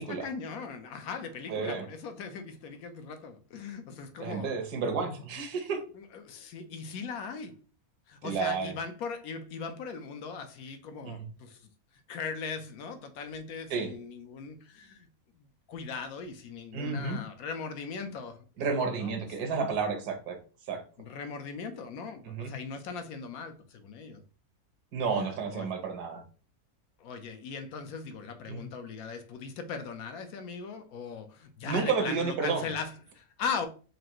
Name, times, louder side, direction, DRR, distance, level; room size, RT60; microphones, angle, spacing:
voice 1, 0.2-4.5 5.9-7.6 8.1-11.7 12.1-15.1 15.4-18.4 19.0-19.1 21.0-24.2 25.1-25.7 27.0-33.7, left 5 dB, 75° left, 1.0 m, -39 dB
voice 2, 1.5-1.8 4.2-5.8 8.2-8.7 11.0-11.2 13.7-13.9 16.7-17.2 18.6-20.4 20.7-20.8 22.2-22.5 24.9-26.2 28.5-28.6 31.6-32.7, right 5 dB, 80° right, 1.4 m, -31 dB
4.7 x 2.5 x 2.9 m
omnidirectional pair, 1.6 m